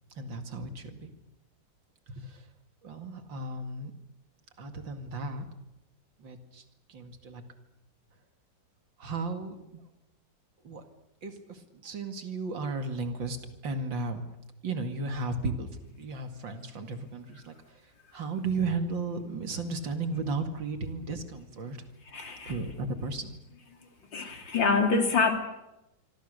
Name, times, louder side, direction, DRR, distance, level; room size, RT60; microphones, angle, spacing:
voice 1, 0.2-1.1 2.1-2.5 2.8-3.9 4.6-5.5 6.2-6.6 6.9-7.4 9.0-9.8 10.6-10.8 11.2-13.4 13.6-14.2 14.6-15.7 16.0-17.5 18.1-21.9 22.5-23.4, right 3 dB, 90° right, 6 dB, 2.9 m, -34 dB
voice 2, 22.1-22.6 23.8-25.3, left 4 dB, 80° left, 4 dB, 3.7 m, -26 dB
27.0 x 24.5 x 6.7 m, 0.91 s
omnidirectional pair, 2.0 m